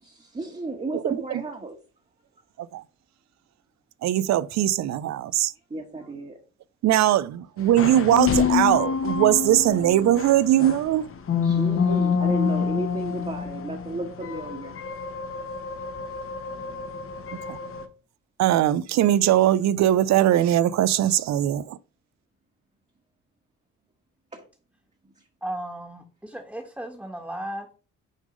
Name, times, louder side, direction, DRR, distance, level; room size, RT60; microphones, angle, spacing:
voice 1, 0.0-1.8 5.7-6.4 11.4-14.8 24.3-24.4, right 2 dB, 20° right, 1.4 m, -33 dB
voice 2, 4.0-5.5 6.8-11.1 11.9-12.0 17.5-17.6 18.4-21.8, right 12 dB, 65° right, 0.5 m, -20 dB
sound 1, 7.6-17.8, left 6 dB, 45° left, 1.2 m, -27 dB
voice 3, 25.4-27.7, right 1 dB, 5° right, 1.4 m, -35 dB
6.3 x 3.7 x 5.1 m
cardioid pair, 90°, 30 cm